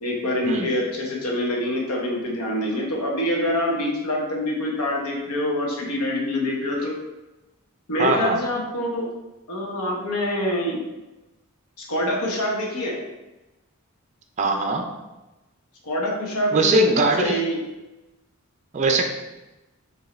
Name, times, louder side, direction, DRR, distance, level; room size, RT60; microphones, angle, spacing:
voice 1, 0.0-7.0 7.9-9.1 9.5-10.8 11.8-13.0 15.8-17.6, left 1 dB, 90° left, -1 dB, 1.0 m, -25 dB
voice 2, 8.0-8.4 14.4-14.9 16.5-17.4 18.7-19.1, right 2 dB, 30° right, 3 dB, 0.4 m, -21 dB
4.9 x 2.8 x 3.2 m, 1.0 s
head